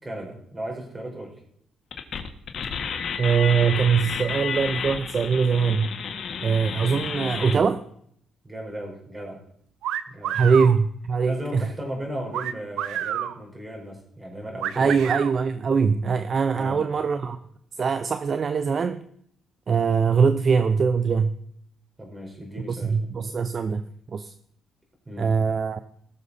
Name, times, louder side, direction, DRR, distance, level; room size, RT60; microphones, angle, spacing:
voice 1, 0.0-1.4 8.4-9.4 10.1-10.4 11.2-15.0 16.5-16.8 22.0-22.9 25.1-25.3, right 1 dB, 20° right, 0 dB, 4.7 m, -36 dB
sound 1, 1.9-7.6, left 6 dB, 60° left, 1.5 m, -31 dB
voice 2, 3.2-5.9 6.4-7.8 10.3-11.7 14.7-17.4 17.8-19.0 19.7-21.3 22.7-24.3 25.2-25.8, right 5 dB, 45° right, 11 dB, 0.6 m, -22 dB
sound 2, 9.8-10.7 12.3-13.3 14.6-15.3, right 10 dB, 85° right, 0.7 m, -29 dB
19.0 x 6.7 x 4.2 m, 0.68 s
cardioid pair, 90°, 0 cm